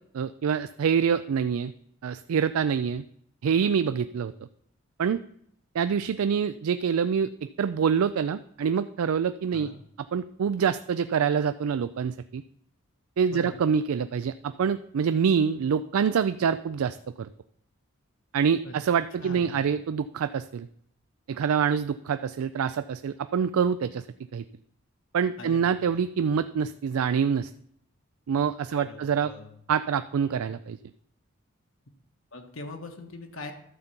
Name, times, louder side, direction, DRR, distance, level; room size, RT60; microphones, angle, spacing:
voice 1, 0.1-1.7 2.0-3.0 3.4-4.3 5.0-5.2 5.7-9.7 10.1-12.4 13.2-17.3 18.3-20.7 21.3-24.0 24.3-24.4 25.1-27.5 28.3-29.3 29.7-30.8, right 7 dB, 85° right, 12 dB, 0.4 m, -26 dB
voice 2, 19.2-19.6 25.4-25.7 28.7-29.6 32.3-33.5, left 2 dB, 70° left, 3 dB, 1.3 m, -41 dB
12.0 x 5.2 x 6.9 m, 0.71 s
head